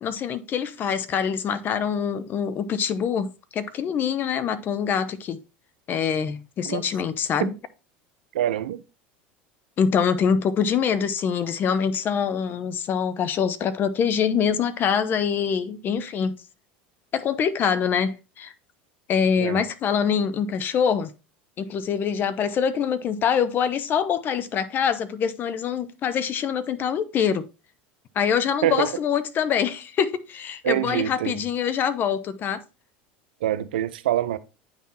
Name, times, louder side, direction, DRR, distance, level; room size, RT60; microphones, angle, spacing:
voice 1, 0.0-5.4 5.9-7.5 9.8-16.4 17.1-18.5 19.1-21.1 21.6-27.5 28.1-32.6, left 7 dB, 40° left, 0.8 m, -24 dB
voice 2, 8.3-8.8 19.4-19.6 28.6-28.9 30.6-31.4 33.4-34.4, right 12 dB, 85° right, 0.6 m, -25 dB
9.0 x 3.7 x 4.2 m
hypercardioid pair, 100°, 5 cm